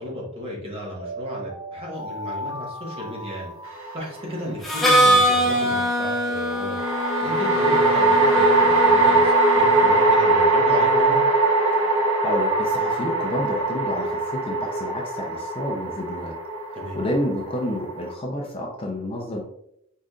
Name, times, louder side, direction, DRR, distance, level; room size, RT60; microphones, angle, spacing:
voice 1, 0.0-3.5 3.9-6.8 7.2-11.2 16.7-17.0, left 1 dB, 25° right, -3 dB, 1.4 m, -33 dB
Alarm, 0.8-5.0 5.5-10.0 10.5-14.3, equal, 65° left, 1.2 m, -37 dB
sound 1, 3.7-4.4 6.8-18.1, right 2 dB, 80° right, 1.0 m, -21 dB
Harmonica, 4.6-10.4, equal, ahead, 0.9 m, -23 dB
voice 2, 12.2-16.3 16.9-19.4, left 1 dB, 25° left, 0 dB, 0.6 m, -29 dB
4.9 x 4.1 x 2.4 m, 0.76 s
head